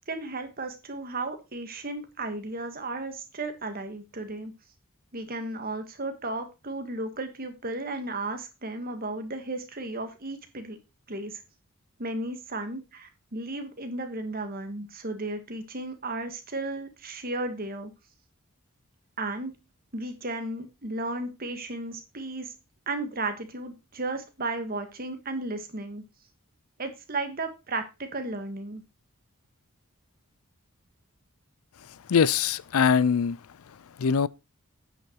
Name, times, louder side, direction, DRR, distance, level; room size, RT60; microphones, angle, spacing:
voice 1, 0.1-4.5 5.1-10.8 11.1-11.4 12.0-17.9 19.2-19.5 19.9-22.5 22.9-26.0 26.8-28.8, right 2 dB, 45° right, 1.7 m, -34 dB
voice 2, 32.1-33.4 34.0-34.3, left 6 dB, 80° left, 0.4 m, -22 dB
9.1 x 5.8 x 4.6 m
head